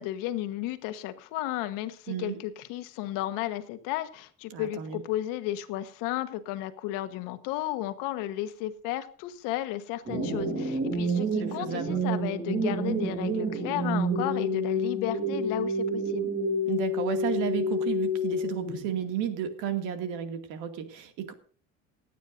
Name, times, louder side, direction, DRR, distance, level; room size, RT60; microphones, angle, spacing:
voice 1, 0.0-16.3, left 14 dB, 90° left, 10 dB, 1.4 m, -33 dB
voice 2, 2.1-2.4 4.5-5.0 11.4-12.0 16.7-21.3, right 9 dB, 75° right, 6 dB, 2.3 m, -33 dB
sound 1, 10.0-19.0, equal, 30° right, 2.8 m, -29 dB
28.0 x 9.3 x 2.6 m, 0.43 s
cardioid pair, 175°, 32 cm